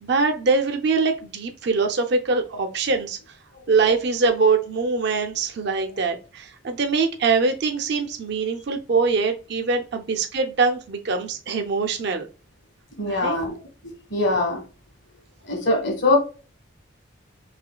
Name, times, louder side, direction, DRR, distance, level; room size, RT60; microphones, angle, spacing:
voice 1, 0.0-3.2 3.7-12.3 13.0-13.4, right 4 dB, 55° right, 0.4 m, -23 dB
voice 2, 13.0-13.5 13.8-14.6 15.4-16.2, left 2 dB, 55° left, 1.4 m, -22 dB
4.9 x 3.0 x 2.2 m
head